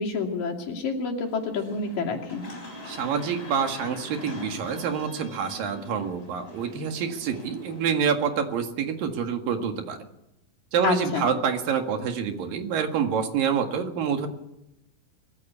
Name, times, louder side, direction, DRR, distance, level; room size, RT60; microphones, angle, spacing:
voice 1, 0.0-2.4 10.8-11.3, left 4 dB, 70° left, 1 dB, 4.2 m, -28 dB
sound 1, 1.2-8.1, left 1 dB, 15° left, 4.1 m, -42 dB
voice 2, 2.9-10.0 10.7-14.3, right 7 dB, 70° right, 5 dB, 3.6 m, -27 dB
22.5 x 15.0 x 8.4 m, 0.87 s
omnidirectional pair, 4.1 m